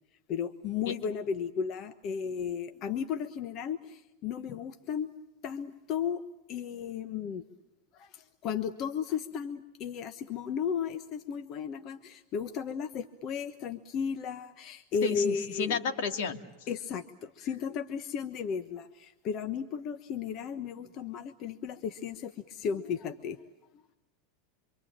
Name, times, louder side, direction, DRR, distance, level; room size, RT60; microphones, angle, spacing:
voice 1, 0.3-5.1 5.4-6.2 6.5-7.4 8.0-8.1 8.4-15.8 16.7-22.3 22.6-23.4, left 7 dB, 35° left, 9 dB, 1.2 m, -34 dB
voice 2, 15.0-16.4, left 6 dB, 65° left, 6 dB, 2.5 m, -31 dB
26.5 x 25.5 x 8.8 m, 0.89 s
supercardioid pair, 155°, 0 cm